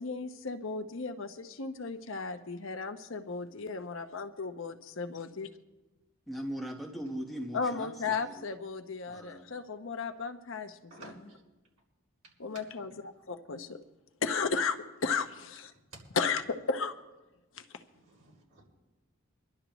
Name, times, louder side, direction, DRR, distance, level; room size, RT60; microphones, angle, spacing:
voice 1, 0.0-5.5 7.5-10.9 12.4-13.8 14.2-15.7 16.2-16.9 17.5-17.6, left 4 dB, 60° left, 8 dB, 0.8 m, -35 dB
voice 2, 6.3-8.4 9.1-9.5, equal, ahead, 0 dB, 1.1 m, -39 dB
voice 3, 10.9-11.4 12.5-12.9 15.9-16.0 17.9-18.7, right 3 dB, 85° right, -4 dB, 5.3 m, -52 dB
25.0 x 11.5 x 3.0 m, 1.1 s
head